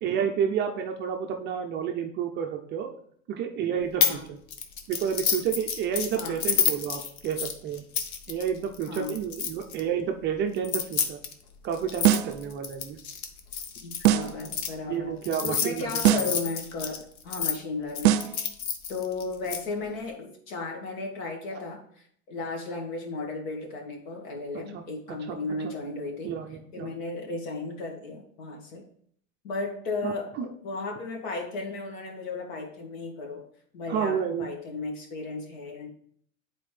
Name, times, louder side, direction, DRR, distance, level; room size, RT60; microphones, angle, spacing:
voice 1, 0.0-2.9 3.3-4.4 4.9-7.8 8.3-11.2 11.6-13.0 14.9-16.0 24.7-24.8 25.3-25.7 26.2-26.9 30.0-30.1 33.9-34.5, right 8 dB, 25° right, 3 dB, 0.4 m, -30 dB
sound 1, 4.0-4.2 4.5-9.8 10.6-14.7 15.2-17.5 18.0-19.6, left 7 dB, 85° left, 1.0 m, -29 dB
voice 2, 4.0-4.3 6.1-6.5 8.9-9.2 13.8-18.3 18.9-26.4 26.7-28.8 29.4-33.4 33.7-35.9, left 3 dB, 65° left, 1 dB, 1.8 m, -35 dB
sound 2, 12.0-12.4 14.0-14.4 16.0-16.4 18.0-18.4, right 12 dB, 80° right, 0.5 m, -22 dB
8.5 x 4.2 x 3.2 m, 0.63 s
supercardioid pair, 125°, 42 cm